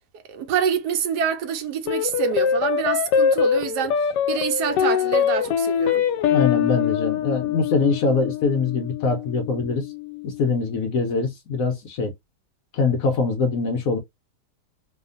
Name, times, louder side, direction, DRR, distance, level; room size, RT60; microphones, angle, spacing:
voice 1, 0.3-6.1, right 7 dB, 75° right, 1.1 m, -26 dB
sound 1, 1.9-10.5, left 8 dB, 85° left, 1.2 m, -23 dB
voice 2, 6.3-9.9 10.2-12.1 12.7-14.0, left 4 dB, 65° left, 0.9 m, -23 dB
2.7 x 2.4 x 2.4 m
omnidirectional pair, 1.8 m